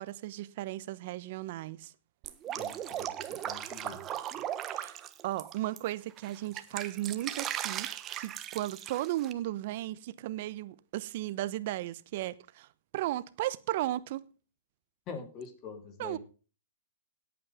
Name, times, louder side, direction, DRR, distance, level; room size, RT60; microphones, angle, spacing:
voice 1, 0.0-1.9 4.7-5.0 5.2-7.9 8.2-12.7 12.9-14.2 16.0-16.2, right 15 dB, 55° right, 0.9 m, -35 dB
Drip, 2.2-5.8 6.2-9.3, right 11 dB, 30° right, 1.2 m, -37 dB
voice 2, 2.5-4.1 15.1-16.2, left 5 dB, 35° left, 3.9 m, -45 dB
17.5 x 8.6 x 3.6 m
hypercardioid pair, 120°, 0 cm